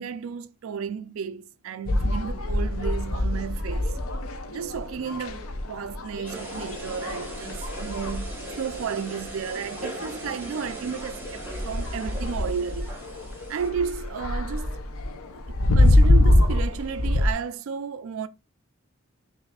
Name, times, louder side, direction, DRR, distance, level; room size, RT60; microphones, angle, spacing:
voice 1, 0.0-3.9 4.5-12.9 13.5-14.8 15.5-18.3, right 6 dB, 70° right, 0.4 m, -33 dB
sound 1, 1.8-17.3, left 1 dB, 85° left, 0.6 m, -25 dB
voice 2, 3.9-4.7 11.6-12.3, left 3 dB, 30° left, 1.1 m, -54 dB
sound 2, 6.2-13.7, right 2 dB, 10° right, 1.1 m, -40 dB
5.6 x 2.7 x 2.3 m
head